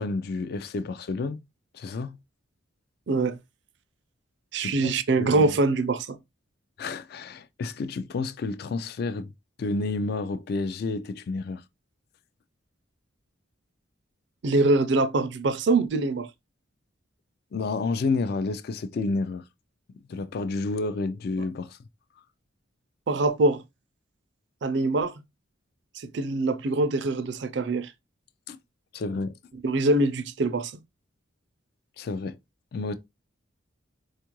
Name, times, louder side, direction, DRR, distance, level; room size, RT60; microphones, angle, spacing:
voice 1, 0.0-1.4 1.7-2.2 4.6-5.6 6.8-9.3 9.6-11.6 17.5-19.4 20.1-21.8 28.5-28.6 28.9-29.4 32.0-32.4 32.7-32.9, left 3 dB, 50° left, 0.3 m, -30 dB
voice 2, 3.1-3.4 4.5-6.2 14.4-16.3 23.1-23.6 24.6-25.1 26.0-27.9 29.6-30.7, right 2 dB, 60° right, 0.4 m, -24 dB
4.4 x 2.4 x 2.9 m
head